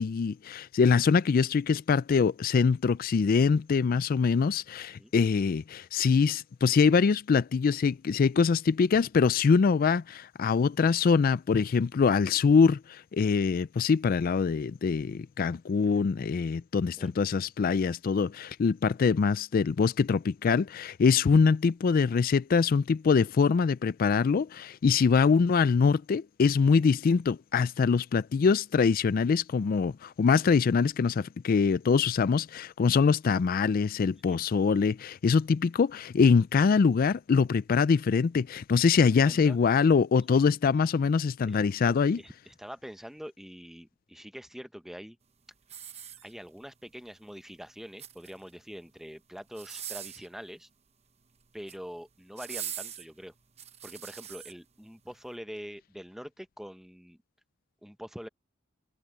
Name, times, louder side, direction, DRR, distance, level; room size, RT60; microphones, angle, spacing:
voice 1, 0.0-42.2, left 5 dB, 45° left, 0.3 m, -24 dB
voice 2, 39.2-39.6 40.1-40.4 41.5-41.6 41.8-45.2 46.2-50.7 51.5-53.3 53.8-57.2 57.8-58.3, equal, ahead, 0.7 m, -44 dB
sound 1, 45.6-46.7 47.8-48.5 49.5-50.3 51.4-51.8 52.4-54.5 55.1-55.2, right 9 dB, 35° right, 1.0 m, -42 dB
head